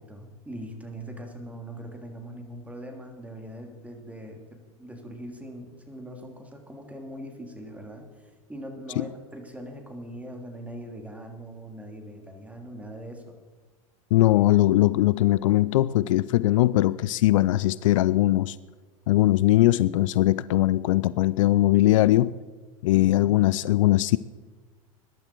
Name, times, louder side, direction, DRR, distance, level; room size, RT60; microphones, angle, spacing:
voice 1, 0.1-13.3 22.9-23.5, right 1 dB, 10° right, 3 dB, 3.2 m, -41 dB
voice 2, 14.1-18.6 19.1-22.3 22.8-24.2, left 15 dB, 65° left, 19 dB, 0.5 m, -20 dB
21.5 x 11.5 x 4.6 m, 1.4 s
hypercardioid pair, 85°, 18 cm